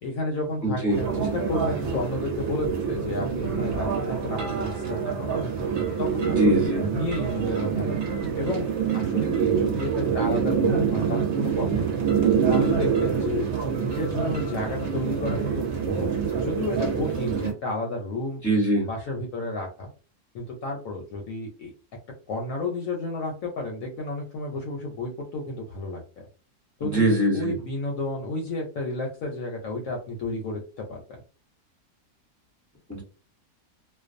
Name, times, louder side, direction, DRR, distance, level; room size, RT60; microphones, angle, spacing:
voice 1, 0.0-5.5 6.0-6.6 6.8-8.0 8.4-12.0 12.5-13.5 13.8-18.4 18.9-19.9 20.3-21.7 22.3-26.0 26.8-31.2, left 2 dB, 70° left, 1 dB, 0.9 m, -31 dB
voice 2, 0.6-1.0 6.2-6.8 18.4-18.9 26.9-27.5 32.9-33.0, right 1 dB, 20° left, -2 dB, 0.5 m, -22 dB
sound 1, 0.9-17.5, right 7 dB, 60° right, 0.8 m, -26 dB
2.5 x 2.2 x 2.4 m, 0.36 s
omnidirectional pair, 1.7 m